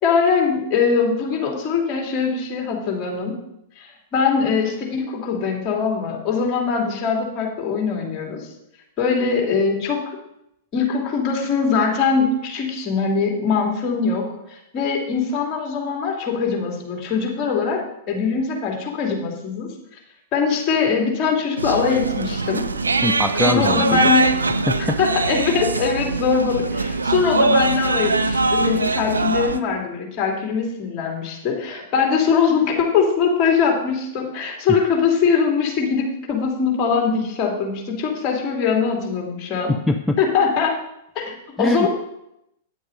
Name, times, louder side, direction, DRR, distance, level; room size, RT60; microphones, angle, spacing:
voice 1, 0.0-3.4 3.8-8.4 9.0-10.2 10.7-14.3 14.7-17.8 18.1-19.7 20.3-22.6 23.4-24.3 25.0-39.7 40.2-40.7 41.1-41.9, left 5 dB, 35° left, 1 dB, 2.8 m, -22 dB
sound 1, 21.6-29.6, right 3 dB, 85° right, 0.6 m, -22 dB
voice 2, 23.0-24.1 24.7-25.0 39.7-40.2 41.6-41.9, left 1 dB, 5° left, 5 dB, 0.5 m, -22 dB
9.4 x 7.6 x 5.2 m, 0.80 s
figure-of-eight pair, 100°, 0 cm